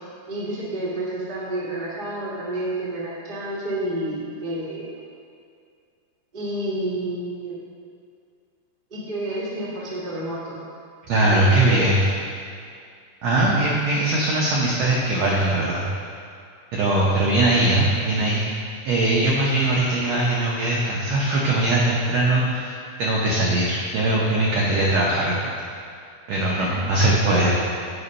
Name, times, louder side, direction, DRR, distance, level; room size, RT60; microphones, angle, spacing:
voice 1, 0.3-5.0 6.3-7.6 8.9-10.6 11.3-11.9 26.5-27.6, right 1 dB, 30° right, -8 dB, 0.9 m, -30 dB
voice 2, 11.1-12.0 13.2-15.8 16.7-25.5 26.3-27.5, right 1 dB, 80° right, -4 dB, 1.5 m, -21 dB
8.4 x 5.0 x 5.3 m, 2.3 s
omnidirectional pair, 4.2 m